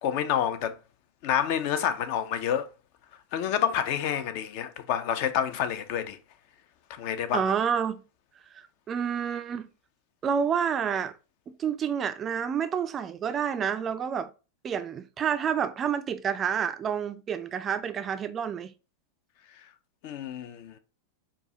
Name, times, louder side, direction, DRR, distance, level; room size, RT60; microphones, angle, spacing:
voice 1, 0.0-0.7 1.2-2.7 3.3-6.2 7.0-7.4 20.0-20.7, left 9 dB, 45° left, 0.4 m, -28 dB
voice 2, 7.3-8.0 8.5-9.7 10.2-11.1 11.6-14.3 14.6-18.7, right 7 dB, 25° right, 0.3 m, -29 dB
4.6 x 2.3 x 3.8 m
figure-of-eight pair, 90°, 0 cm